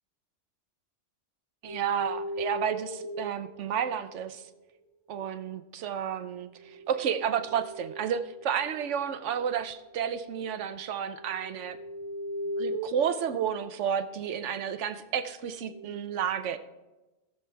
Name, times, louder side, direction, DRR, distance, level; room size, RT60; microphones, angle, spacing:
voice 1, 1.6-4.4 5.1-11.8 12.6-16.6, right 8 dB, 90° right, 11 dB, 1.0 m, -31 dB
sound 1, 1.7-4.5 6.5-14.2 15.6-16.0, right 1 dB, 30° right, 0.5 m, -40 dB
19.0 x 6.9 x 3.4 m, 1.1 s
omnidirectional pair, 1.2 m